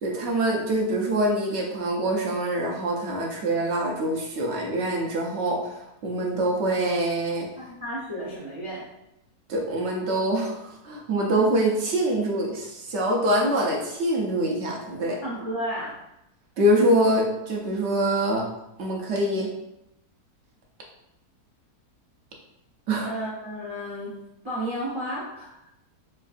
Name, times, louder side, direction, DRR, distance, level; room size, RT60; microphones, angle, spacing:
voice 1, 0.0-7.5 9.5-15.2 16.6-18.4 18.8-19.5 22.9-23.1, right 1 dB, 60° right, -1 dB, 0.7 m, -24 dB
voice 2, 7.6-8.8 15.2-15.9 23.0-24.2 24.4-25.5, equal, 45° right, -7 dB, 0.3 m, -32 dB
4.4 x 2.4 x 2.4 m, 0.86 s
omnidirectional pair, 1.7 m